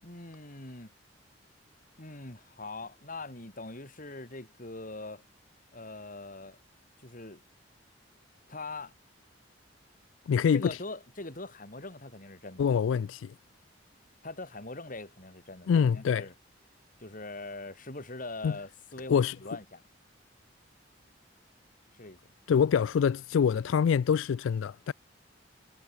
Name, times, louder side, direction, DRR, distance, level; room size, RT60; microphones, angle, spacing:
voice 1, 0.0-0.9 2.0-5.2 5.7-6.6 7.0-7.4 8.5-8.9 10.5-12.6 14.2-16.3 17.0-19.8 21.9-22.3, left 2 dB, 45° left, 5.0 m, -42 dB
voice 2, 10.3-10.7 12.6-13.3 15.7-16.3 18.4-18.5 19.1-19.4 22.5-24.9, left 7 dB, 85° left, 0.3 m, -25 dB
head